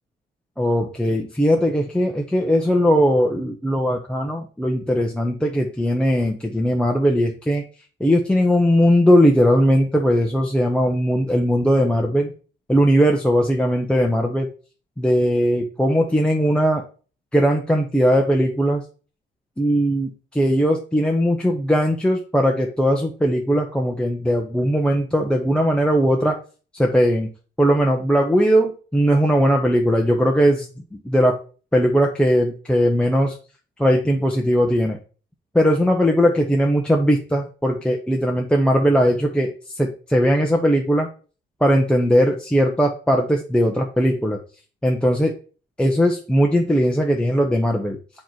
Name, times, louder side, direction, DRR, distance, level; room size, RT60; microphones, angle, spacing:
voice 1, 0.6-7.6 8.0-12.3 12.7-14.5 15.0-16.8 17.3-18.8 19.6-26.4 26.8-27.3 27.6-30.7 31.0-31.4 31.7-33.4 33.8-35.0 35.5-41.1 41.6-44.4 44.8-45.4 45.8-48.0, equal, 5° left, 1 dB, 0.7 m, -19 dB
7.0 x 3.0 x 4.5 m, 0.38 s
cardioid pair, 90°, 20 cm